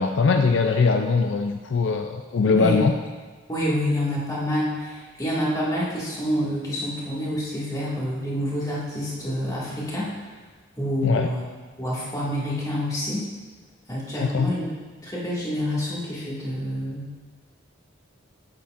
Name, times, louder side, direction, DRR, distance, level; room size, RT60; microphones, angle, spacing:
voice 1, 0.0-2.9 11.0-11.3 14.2-14.5, left 4 dB, 60° left, 4 dB, 0.4 m, -21 dB
voice 2, 3.5-10.1 10.8-11.4 11.8-13.2 13.9-14.7 15.0-17.1, equal, 15° left, -7 dB, 1.8 m, -27 dB
8.4 x 8.3 x 2.5 m, 1.4 s
head